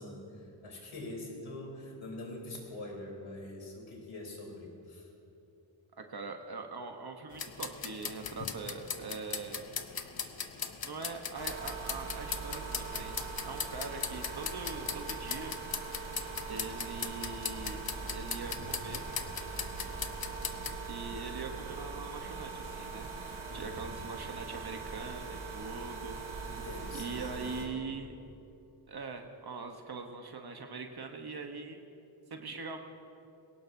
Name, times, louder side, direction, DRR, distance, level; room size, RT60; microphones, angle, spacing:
voice 1, 0.0-5.1 23.4-24.0 26.4-27.7, left 1 dB, 80° left, -1 dB, 3.7 m, -44 dB
voice 2, 6.1-9.7 10.8-15.5 16.5-17.8 18.1-19.1 20.9-23.2 23.5-26.2 26.9-28.1 28.9-31.8 32.3-32.8, right 4 dB, 50° right, 4 dB, 1.0 m, -42 dB
sound 1, 7.3-20.8, left 6 dB, 50° left, 0.9 m, -40 dB
sound 2, 11.3-27.6, right 4 dB, 85° right, 3.1 m, -41 dB
22.0 x 18.0 x 2.7 m, 2.7 s
wide cardioid pair, 130°, 48 cm